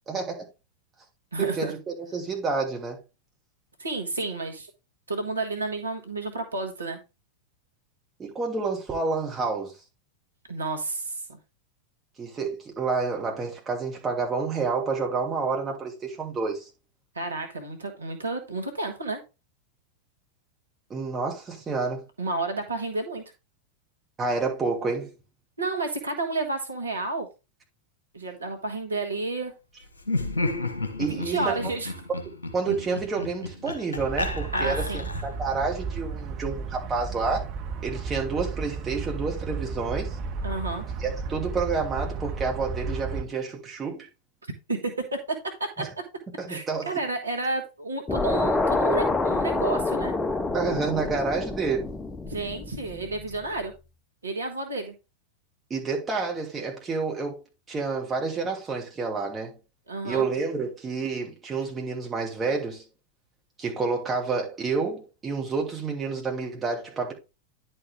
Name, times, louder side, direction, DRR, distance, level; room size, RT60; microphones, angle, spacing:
voice 1, 0.1-0.5 1.4-3.0 8.2-9.7 12.2-16.6 20.9-22.0 24.2-25.1 31.0-31.6 32.5-37.4 37.8-40.2 41.0-44.1 45.8-45.9 46.4-46.9 50.5-51.9 55.7-57.4 57.7-59.6 60.0-62.8 63.6-67.1, right 4 dB, 20° right, 2.5 m, -29 dB
voice 2, 1.3-1.7 3.8-4.7 5.1-7.0 10.5-11.4 17.1-19.2 22.2-23.2 25.6-27.3 28.1-29.5 31.1-31.9 34.5-35.1 40.4-40.8 44.7-45.2 45.6-45.8 46.5-50.1 52.2-53.7 54.2-54.9 59.9-60.3, right 3 dB, 75° right, 1.4 m, -31 dB
Laughter, 30.0-35.4, left 2 dB, 75° left, 1.4 m, -31 dB
sound 1, 34.0-43.2, right 5 dB, 40° right, 1.0 m, -33 dB
sound 2, 48.1-53.4, left 3 dB, 15° left, 0.7 m, -27 dB
10.5 x 4.4 x 3.5 m
figure-of-eight pair, 90°, 0 cm